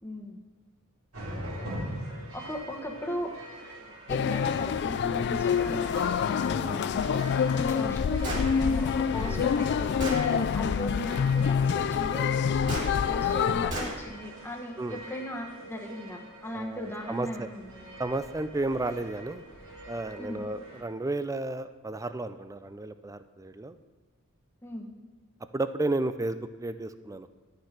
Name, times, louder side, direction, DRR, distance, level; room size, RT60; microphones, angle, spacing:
voice 1, 0.0-0.4 2.3-3.3 4.1-10.0 10.5-18.0 20.2-20.5 24.6-24.9, equal, 10° left, 1 dB, 1.2 m, -38 dB
sound 1, 1.1-20.8, right 1 dB, 85° right, 3.5 m, -44 dB
sound 2, 4.1-13.7, left 7 dB, 55° left, 0.3 m, -26 dB
voice 2, 6.5-6.8 9.3-9.5 10.3-10.5 14.8-15.0 16.5-17.5 18.0-19.4 19.9-23.8 25.5-27.3, right 2 dB, 15° right, 11 dB, 0.4 m, -33 dB
Gunshot gunfire, 8.2-8.5 9.4-9.5 10.0-10.2 12.7-12.9 13.7-13.9, equal, 35° right, 2.5 m, -32 dB
11.5 x 6.6 x 5.9 m, 1.4 s
head